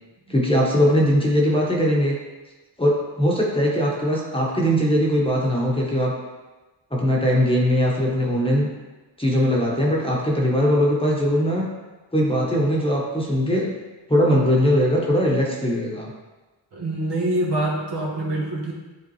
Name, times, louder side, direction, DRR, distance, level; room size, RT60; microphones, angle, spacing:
voice 1, 0.3-2.2 2.8-6.2 6.9-8.7 9.2-11.7 12.1-13.7 14.1-16.1, equal, 10° left, -3 dB, 1.2 m, -20 dB
voice 2, 16.7-18.7, right 1 dB, 60° right, -3 dB, 1.7 m, -25 dB
10.5 x 3.6 x 3.2 m, 1.2 s
wide cardioid pair, 105°, 45 cm